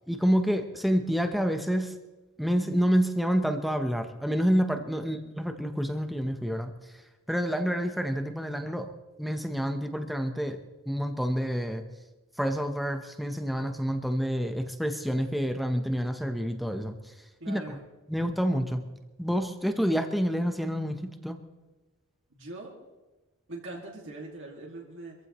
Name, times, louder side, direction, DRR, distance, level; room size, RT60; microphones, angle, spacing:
voice 1, 0.1-1.9 2.4-6.7 7.3-8.9 9.2-10.6 10.9-11.9 12.4-17.0 17.5-17.8 18.1-18.8 19.2-21.4, equal, ahead, 6 dB, 0.8 m, -28 dB
voice 2, 17.4-17.9 22.3-22.7 23.5-25.1, right 2 dB, 60° right, -2 dB, 2.2 m, -42 dB
25.0 x 15.0 x 3.1 m, 1.1 s
head